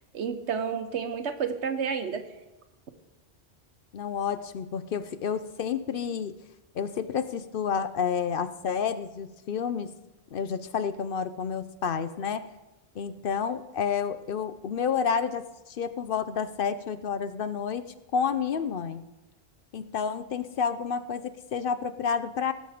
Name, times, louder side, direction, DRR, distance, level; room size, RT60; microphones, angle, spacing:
voice 1, 0.1-2.2, right 6 dB, 85° right, 8 dB, 1.3 m, -30 dB
voice 2, 3.9-6.3 6.7-9.9 10.3-12.5 13.0-17.8 18.1-19.0 19.7-22.5, left 6 dB, 60° left, 12 dB, 0.7 m, -30 dB
19.0 x 7.5 x 5.0 m, 1.0 s
omnidirectional pair, 1.1 m